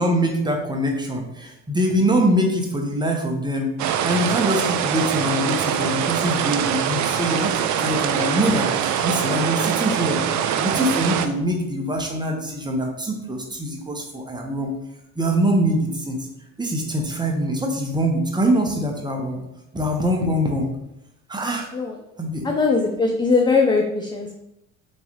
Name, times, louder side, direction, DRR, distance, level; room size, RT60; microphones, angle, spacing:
voice 1, 0.0-3.7 4.0-10.2 10.6-14.7 15.2-16.3 16.6-19.4 19.7-20.7 21.3-21.7 22.2-22.5, equal, 10° right, 1 dB, 0.8 m, -23 dB
sound 1, 3.8-11.3, right 9 dB, 50° right, 0.4 m, -23 dB
voice 2, 22.4-24.4, left 4 dB, 15° left, 2 dB, 0.3 m, -20 dB
3.5 x 3.2 x 3.0 m, 0.86 s
hypercardioid pair, 70°, 36 cm